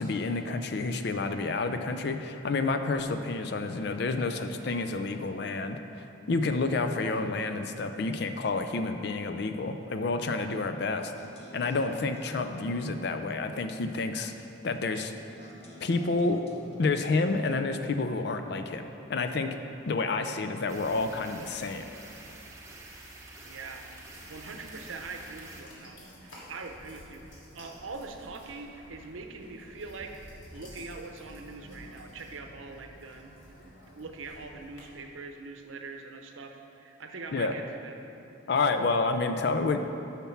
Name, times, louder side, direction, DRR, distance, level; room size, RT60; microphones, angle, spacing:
voice 1, 0.0-11.1 11.5-15.1 15.8-16.4 16.8-19.6 19.9-21.9 37.3-37.5 38.5-39.9, left 3 dB, 55° left, 8 dB, 0.4 m, -29 dB
sound 1, 11.2-13.4 15.4-17.6, left 1 dB, 35° left, 0.8 m, -48 dB
sound 2, 20.7-25.6, right 2 dB, 15° right, 0.8 m, -48 dB
voice 2, 23.2-23.9 24.3-30.1 30.5-37.9, right 3 dB, 85° right, 4 dB, 0.7 m, -43 dB
sound 3, 24.0-34.8, equal, 80° left, 2.0 m, -51 dB
7.1 x 5.9 x 5.8 m, 2.8 s
head